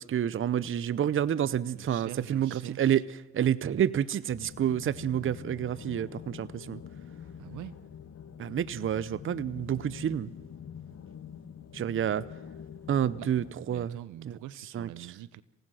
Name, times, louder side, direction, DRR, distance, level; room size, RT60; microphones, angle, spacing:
voice 1, 0.0-3.0 3.3-6.8 8.4-10.3 11.7-12.2 12.9-14.0 14.3-14.4 14.7-15.1, right 10 dB, 45° right, 18 dB, 0.7 m, -29 dB
voice 2, 1.8-3.0 7.4-7.7 13.2-13.3 13.7-15.4, right 13 dB, 80° right, 18 dB, 0.9 m, -44 dB
sound 1, 4.3-13.5, left 8 dB, 55° left, 1.3 m, -45 dB
27.5 x 16.5 x 6.3 m, 0.91 s
cardioid pair, 90°, 30 cm